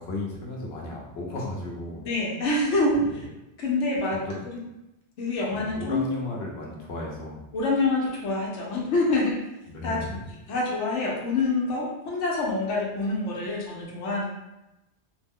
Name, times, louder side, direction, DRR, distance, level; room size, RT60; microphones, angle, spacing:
voice 1, 0.0-2.0 3.1-3.2 4.1-4.4 5.5-7.4 9.7-10.2, left 2 dB, 65° left, -3 dB, 1.0 m, -34 dB
voice 2, 2.0-3.2 3.6-4.2 5.2-6.0 7.5-9.4 9.8-10.0 10.5-14.3, left 2 dB, 90° left, -3 dB, 1.0 m, -26 dB
3.0 x 2.1 x 3.5 m, 0.94 s
omnidirectional pair, 1.2 m